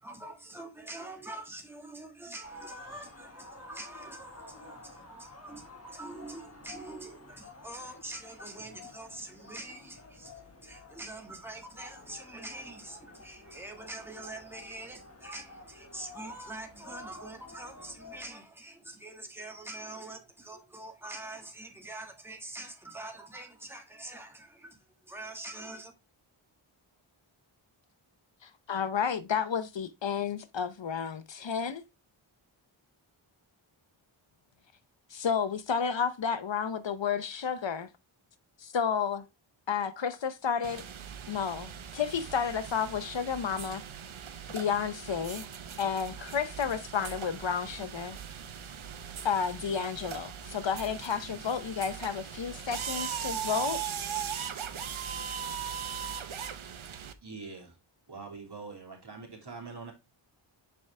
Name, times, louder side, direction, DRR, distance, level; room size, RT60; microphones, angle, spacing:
voice 1, 0.0-25.9, right 2 dB, 5° right, 1.5 m, -44 dB
sound 1, 2.4-18.3, left 3 dB, 30° left, 1.3 m, -52 dB
voice 2, 28.4-31.8 35.1-37.9 38.6-39.2 39.7-40.8 41.3-43.8 44.5-45.5 45.8-48.2 49.2-53.8, left 7 dB, 60° left, 0.7 m, -31 dB
sound 2, 40.6-57.1, right 8 dB, 70° right, 0.8 m, -39 dB
voice 3, 57.2-57.8 58.1-59.9, right 4 dB, 50° right, 2.7 m, -44 dB
6.9 x 4.8 x 3.2 m
wide cardioid pair, 70°, 50 cm